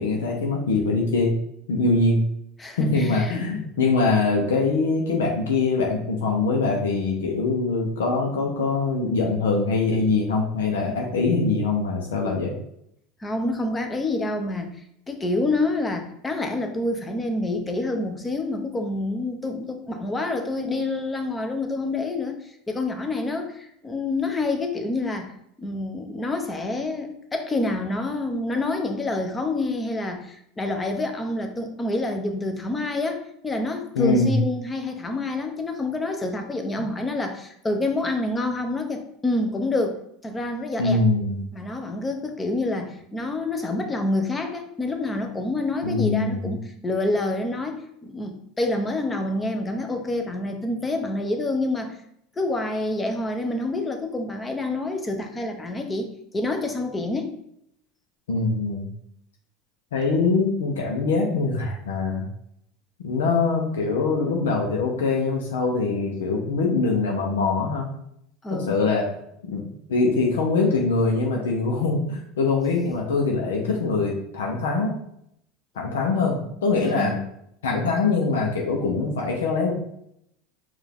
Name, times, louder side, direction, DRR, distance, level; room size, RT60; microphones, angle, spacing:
voice 1, 0.0-1.3 1.7-2.2 2.8-12.5 34.0-34.4 40.8-41.4 45.8-46.5 58.3-58.9 59.9-62.3 63.0-67.9 68.5-69.0 69.5-74.9 75.8-77.2 77.6-79.7, left 3 dB, 85° left, 0 dB, 0.7 m, -23 dB
voice 2, 2.6-3.4 13.2-14.7 15.1-25.3 25.6-41.0 41.5-52.0 52.4-56.1 56.3-57.4 68.4-68.8 76.8-77.2, left 2 dB, 20° left, 5 dB, 0.7 m, -27 dB
4.6 x 2.5 x 3.5 m, 0.74 s
hypercardioid pair, 95°, 0 cm